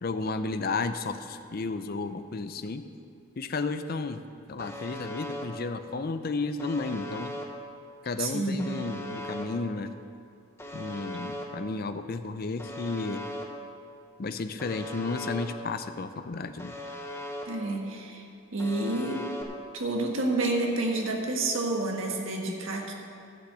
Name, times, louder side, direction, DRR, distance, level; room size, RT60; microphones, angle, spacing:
voice 1, 0.0-2.8 3.4-4.2 4.5-7.4 8.0-9.9 10.7-13.3 14.2-16.8, left 3 dB, 45° left, 9 dB, 0.5 m, -33 dB
Alarm, 4.6-5.4 6.6-7.4 8.6-9.4 10.6-11.4 12.6-13.4 14.6-15.4 16.6-17.4 18.6-19.4, left 1 dB, 10° left, 0.9 m, -38 dB
voice 2, 8.2-8.8 17.4-18.2 18.5-19.3 19.7-22.9, right 2 dB, 65° right, 1 dB, 1.6 m, -29 dB
11.5 x 6.4 x 8.1 m, 2.4 s
head